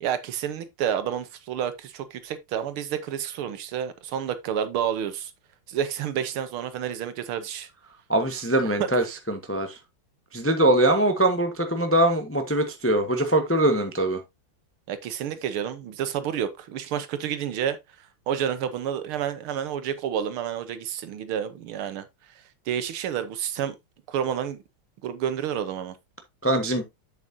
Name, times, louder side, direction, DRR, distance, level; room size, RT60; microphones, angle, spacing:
voice 1, 0.0-5.3 5.7-7.7 8.8-8.9 14.9-22.1 22.7-23.8 24.1-24.6 25.0-26.0, right 9 dB, 80° right, 1.9 m, -29 dB
voice 2, 8.1-9.8 10.3-14.2 26.4-26.8, right 1 dB, 10° left, 0.6 m, -22 dB
8.2 x 7.3 x 2.7 m
omnidirectional pair, 2.3 m